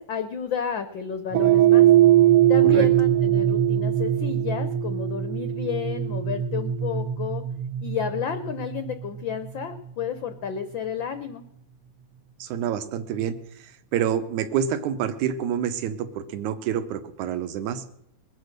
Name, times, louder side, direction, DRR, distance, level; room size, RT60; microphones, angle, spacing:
voice 1, 0.0-1.9 2.5-7.4 7.8-11.4, left 8 dB, 80° left, 9 dB, 1.0 m, -31 dB
sound 1, 1.3-9.8, right 12 dB, 70° right, 1.5 m, -21 dB
voice 2, 12.4-17.8, right 9 dB, 85° right, 10 dB, 2.4 m, -28 dB
21.0 x 8.7 x 6.5 m, 0.82 s
omnidirectional pair, 3.3 m